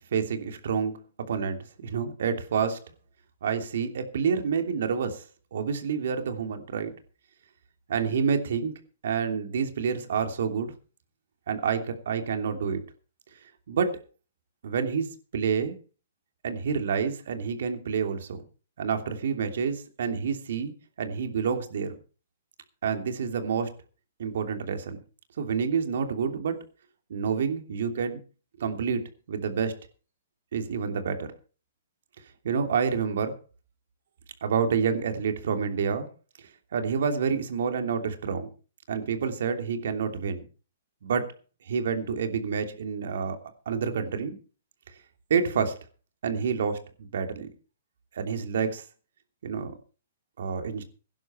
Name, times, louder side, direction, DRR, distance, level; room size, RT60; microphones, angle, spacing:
voice 1, 0.1-1.0 1.3-2.8 3.4-5.2 5.5-6.9 7.9-10.7 11.5-12.8 13.7-14.0 14.6-15.1 15.3-15.7 16.4-18.4 18.8-20.7 21.0-21.9 22.8-23.7 24.2-25.0 25.4-26.6 27.1-28.2 28.6-29.0 29.3-29.7 30.5-31.3 32.4-33.3 34.4-36.1 36.4-38.5 38.9-40.4 41.0-41.2 41.6-43.4 43.6-44.4 45.3-45.7 46.2-47.5 48.1-48.8 49.4-49.7 50.4-50.8, right 6 dB, 70° right, 7 dB, 2.9 m, -28 dB
17.0 x 11.0 x 4.5 m, 0.36 s
hypercardioid pair, 140°, 0 cm